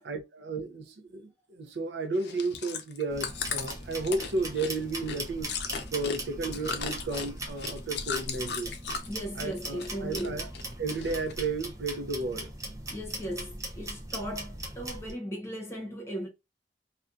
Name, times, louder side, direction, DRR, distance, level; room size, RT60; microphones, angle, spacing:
voice 1, 0.1-5.6 5.9-8.7 9.4-10.5 10.8-12.5, right 3 dB, 70° right, 0.5 m, -33 dB
Chewing mastication, 2.2-9.2 9.5-10.3 10.5-11.5 11.9-12.0, left 6 dB, 65° left, 0.5 m, -36 dB
sound 1, 3.1-15.1, right 1 dB, 20° right, 0.5 m, -39 dB
voice 2, 9.1-10.5 12.9-16.3, equal, 15° left, 0.8 m, -37 dB
2.4 x 2.2 x 2.5 m
head